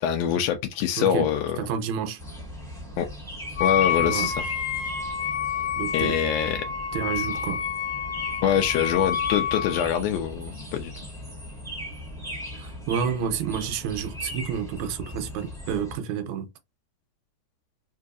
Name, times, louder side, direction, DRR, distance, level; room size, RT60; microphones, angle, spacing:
voice 1, 0.0-1.7 3.0-3.1 3.6-4.4 5.9-6.6 8.4-10.9, left 9 dB, 90° left, 1.4 m, -24 dB
voice 2, 1.0-1.3 1.6-2.2 4.0-4.3 5.8-6.2 6.9-7.6 12.5-16.5, right 7 dB, 80° right, 1.9 m, -29 dB
sound 1, 2.2-16.0, equal, ahead, 0.8 m, -38 dB
Wind instrument woodwind instrument, 3.6-9.9, left 8 dB, 70° left, 1.5 m, -28 dB
4.6 x 2.6 x 2.4 m
omnidirectional pair, 3.4 m